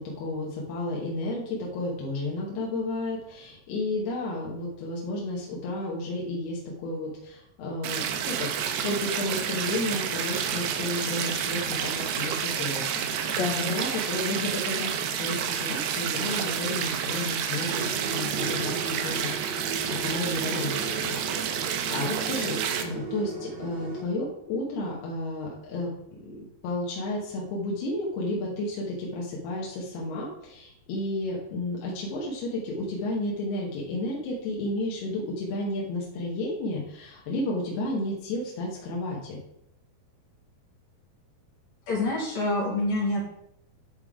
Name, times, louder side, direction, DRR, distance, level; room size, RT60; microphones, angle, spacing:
voice 1, 0.0-12.9 13.2-14.9 15.2-17.9 18.1-21.1 21.4-21.6 21.9-25.9 26.2-39.4, left 2 dB, 90° left, -3 dB, 3.2 m, -32 dB
sound 1, 7.8-22.8, right 8 dB, 85° right, 2.8 m, -30 dB
voice 2, 13.3-13.7 41.9-43.2, left 2 dB, 70° left, -5 dB, 3.2 m, -27 dB
sound 2, 17.7-24.0, right 4 dB, 55° right, 2.6 m, -36 dB
10.5 x 3.6 x 4.8 m, 0.76 s
omnidirectional pair, 4.4 m